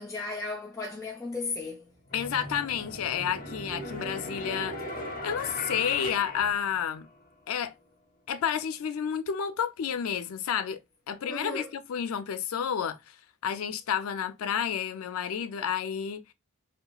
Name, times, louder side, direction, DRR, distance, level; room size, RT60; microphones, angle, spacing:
voice 1, 0.0-1.9 11.3-11.7, left 3 dB, 15° left, 0.4 m, -35 dB
sound 1, 1.3-1.5 2.1-7.3, left 1 dB, 45° left, 0.8 m, -38 dB
voice 2, 2.1-4.8 5.2-7.1 7.5-7.7 8.3-10.8 11.1-13.2 13.4-16.2, left 8 dB, 75° left, 0.4 m, -30 dB
2.8 x 2.2 x 2.3 m
head